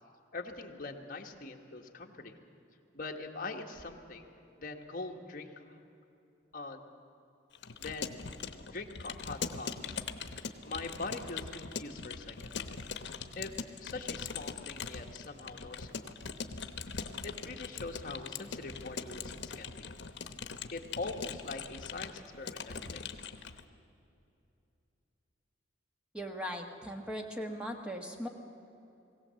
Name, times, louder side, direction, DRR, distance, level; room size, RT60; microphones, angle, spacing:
voice 1, 0.3-2.3 2.9-4.3 4.6-5.6 6.5-6.8 7.8-8.1 8.7-10.0 10.7-12.6 13.4-13.5 13.8-16.1 17.2-19.9 20.7-23.1, left 3 dB, 45° left, 2 dB, 1.5 m, -42 dB
Keyboard (musical) / Computer keyboard, 7.5-23.6, left 5 dB, 75° left, 1.0 m, -41 dB
voice 2, 26.1-28.3, equal, 5° right, 3 dB, 1.4 m, -39 dB
21.0 x 17.0 x 7.7 m, 2.7 s
head